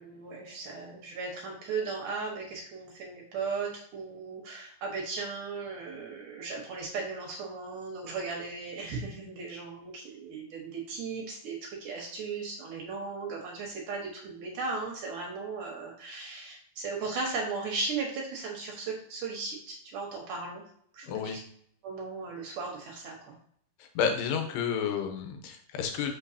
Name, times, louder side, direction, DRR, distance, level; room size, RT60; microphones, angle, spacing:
voice 1, 0.0-20.6 20.9-21.4 21.8-23.4, right 4 dB, 65° right, -1 dB, 2.4 m, -36 dB
voice 2, 21.0-21.4 23.8-26.1, left 7 dB, 85° left, 4 dB, 3.0 m, -31 dB
6.2 x 6.2 x 2.7 m, 0.64 s
omnidirectional pair, 4.7 m